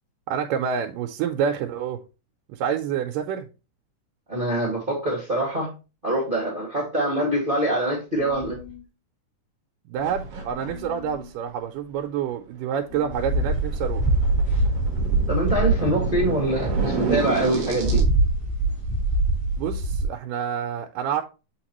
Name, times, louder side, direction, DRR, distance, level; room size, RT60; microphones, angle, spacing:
voice 1, 0.3-2.0 2.5-3.5 9.9-14.1 19.6-21.2, right 8 dB, 90° right, 2.3 m, -28 dB
voice 2, 4.3-5.7 6.0-8.6 15.3-18.0, right 1 dB, 20° right, 1.6 m, -24 dB
sound 1, 8.1-8.9 10.5-11.3 12.9-13.6, left 7 dB, 80° left, 2.4 m, -41 dB
sound 2, 10.0-11.2 12.9-18.0, right 4 dB, 60° right, 1.7 m, -31 dB
sound 3, 13.1-20.0, right 2 dB, 5° left, 1.5 m, -24 dB
7.1 x 4.6 x 3.0 m
omnidirectional pair, 3.7 m